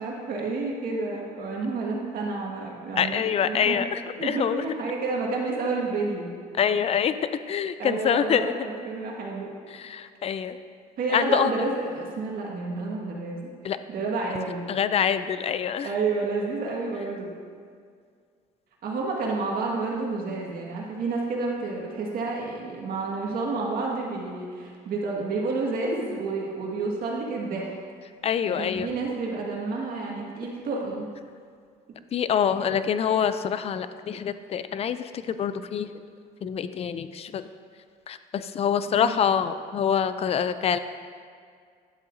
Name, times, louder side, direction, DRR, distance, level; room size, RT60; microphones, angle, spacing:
voice 1, 0.0-3.8 4.2-6.3 7.8-9.5 11.0-13.5 13.9-14.6 15.8-17.3 18.8-27.8 28.4-31.1 32.6-32.8 38.9-39.1, right 3 dB, 60° right, -2 dB, 1.8 m, -30 dB
voice 2, 3.0-4.6 6.6-7.2 7.5-8.5 9.7-10.6 11.1-11.5 13.6-13.8 14.7-15.9 28.2-28.9 32.1-35.9 36.4-37.5 38.1-40.8, left 8 dB, 35° left, 12 dB, 0.4 m, -25 dB
11.0 x 7.4 x 2.7 m, 2.1 s
cardioid pair, 110°, 17 cm